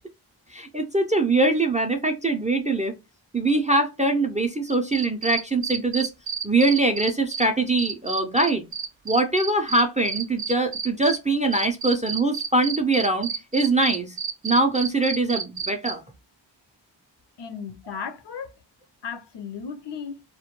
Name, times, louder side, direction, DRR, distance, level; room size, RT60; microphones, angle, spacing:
voice 1, 0.5-2.9 3.3-6.1 6.4-8.6 9.1-14.1 14.4-16.0, right 2 dB, 15° right, 0.3 m, -23 dB
sound 1, 4.7-7.4 7.8-11.2 11.5-15.9, right 6 dB, 70° right, 0.5 m, -30 dB
voice 2, 17.4-18.5 19.0-20.2, left 6 dB, 65° left, 0.5 m, -35 dB
2.1 x 2.1 x 2.8 m
wide cardioid pair, 45°, 46 cm